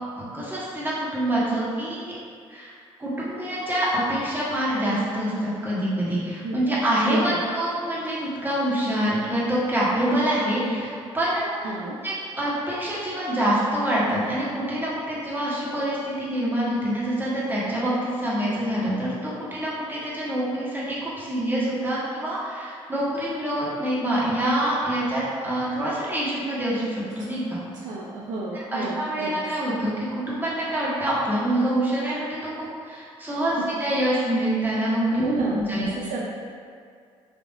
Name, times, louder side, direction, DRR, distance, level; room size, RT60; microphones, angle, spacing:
voice 1, 0.2-2.1 2.5-2.7 3.0-11.7 12.0-27.6 28.7-36.1, right 1 dB, 15° right, -8 dB, 1.5 m, -26 dB
voice 2, 7.0-7.5 11.6-12.0 27.7-29.4 35.2-35.6 36.0-36.2, right 2 dB, 55° right, -4 dB, 0.5 m, -31 dB
4.6 x 3.5 x 2.5 m, 2.2 s
hypercardioid pair, 50°, 15 cm